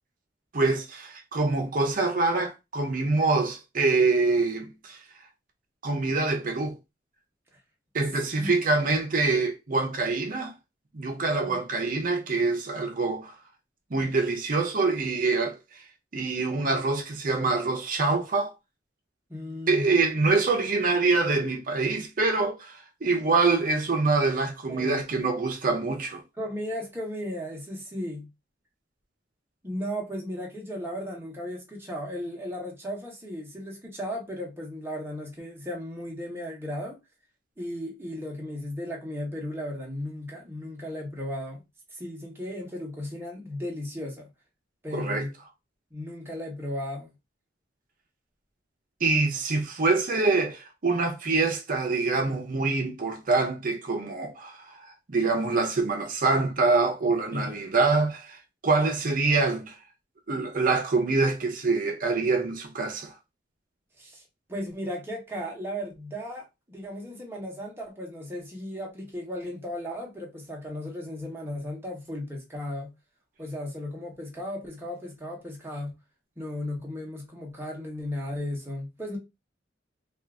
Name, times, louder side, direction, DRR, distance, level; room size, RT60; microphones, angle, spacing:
voice 1, 0.5-5.0 5.8-6.8 7.9-10.5 10.9-13.4 13.9-15.6 16.1-18.5 19.7-26.2 44.9-45.3 49.0-58.4 58.6-59.7 60.3-63.1, right 3 dB, 50° right, 0.6 m, -25 dB
voice 2, 19.3-19.8 24.7-25.0 26.4-28.3 29.6-37.0 37.6-41.6 41.9-44.3 44.8-45.3 45.9-47.1 57.3-57.6 64.0-64.2 64.5-72.9 73.4-75.9 76.4-79.2, left 1 dB, 15° right, 1.0 m, -35 dB
2.6 x 2.4 x 3.4 m
head